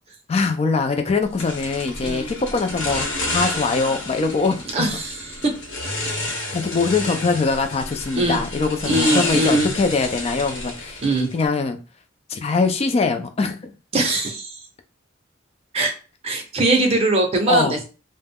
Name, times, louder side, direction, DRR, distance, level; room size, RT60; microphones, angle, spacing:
voice 1, 0.3-5.0 6.0-6.1 6.5-11.0 11.3-11.8 12.3-14.0 17.5-17.8, left 4 dB, 30° left, 0.3 m, -23 dB
sound 1, 1.4-11.5, left 2 dB, 75° left, 0.9 m, -30 dB
voice 2, 4.7-5.5 8.1-8.4 8.8-9.7 11.0-11.3 13.9-14.5 15.7-15.9 16.2-17.8, right 2 dB, 30° right, 0.6 m, -21 dB
2.2 x 2.1 x 3.4 m
head